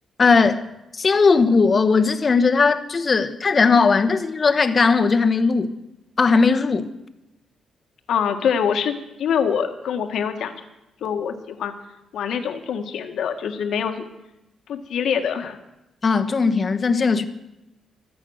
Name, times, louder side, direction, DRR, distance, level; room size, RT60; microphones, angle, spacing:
voice 1, 0.2-0.6 0.9-5.7 6.2-6.9 16.0-17.3, left 4 dB, 35° left, 1.1 m, -18 dB
voice 2, 8.1-10.5 11.0-11.7 12.1-14.0 14.7-15.6, left 7 dB, 75° left, 1.6 m, -24 dB
24.0 x 8.6 x 6.4 m
cardioid pair, 115°, 0 cm